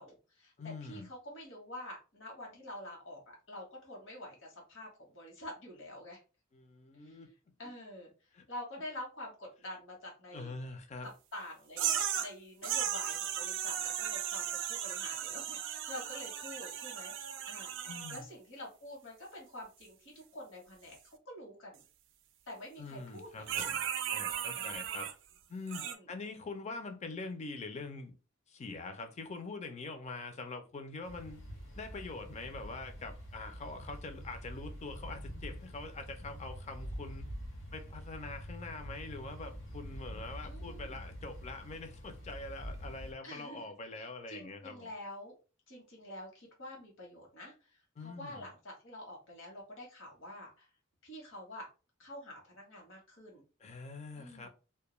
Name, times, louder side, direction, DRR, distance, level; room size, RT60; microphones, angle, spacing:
voice 1, 0.0-0.5 0.8-6.2 7.0-7.2 7.6-8.1 8.5-10.5 11.0-17.7 18.1-21.0 21.3-21.8 22.5-23.5 24.5-24.8 25.8-26.1 40.4-41.0 43.2-43.6 43.9-45.3 45.7-50.7 51.0-51.7 52.0-53.4 54.2-54.5, left 1 dB, 65° left, 1.0 m, -47 dB
voice 2, 0.6-1.1 6.5-7.3 8.3-8.4 10.3-11.1 17.8-18.3 22.8-25.1 25.5-28.2 28.5-31.4 31.7-37.3 37.7-44.9 48.0-48.5 53.6-54.5, left 3 dB, 35° left, 0.4 m, -44 dB
sound 1, 11.8-12.3 12.6-18.2 23.5-25.1 25.7-26.0, right 10 dB, 65° right, 0.3 m, -36 dB
sound 2, 31.0-43.1, equal, 85° left, 1.2 m, -46 dB
2.2 x 2.1 x 2.9 m
head